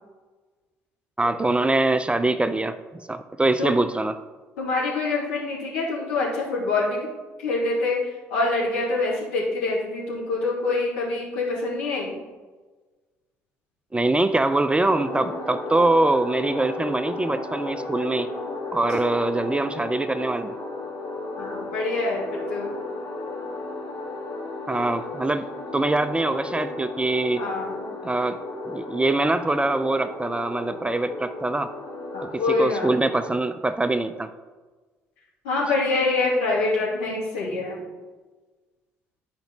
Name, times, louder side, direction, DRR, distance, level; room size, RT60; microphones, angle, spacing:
voice 1, 1.2-4.2 13.9-18.3 18.7-20.6 24.7-25.4 25.7-27.4 28.0-28.4 28.6-31.7 32.3-34.3, right 2 dB, 15° right, 11 dB, 0.5 m, -23 dB
voice 2, 4.6-7.0 7.4-8.0 8.3-12.2 21.4-22.7 27.4-27.8 32.1-32.9 35.4-37.8, left 3 dB, 75° left, -6 dB, 2.4 m, -25 dB
sound 1, 14.8-33.4, left 2 dB, 50° left, 1.9 m, -34 dB
10.5 x 5.1 x 3.0 m, 1.3 s
hypercardioid pair, 50°, 7 cm